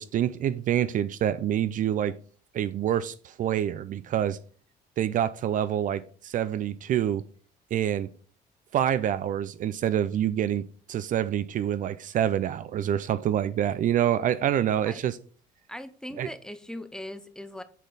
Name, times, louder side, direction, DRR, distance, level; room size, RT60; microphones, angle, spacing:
voice 1, 0.0-2.2 2.5-4.4 5.0-7.2 7.7-8.1 8.7-15.2 16.2-16.3, right 10 dB, 50° right, 0.4 m, -26 dB
voice 2, 15.7-17.6, left 1 dB, 5° left, 0.6 m, -39 dB
8.2 x 4.4 x 3.9 m
cardioid pair, 110°, 17 cm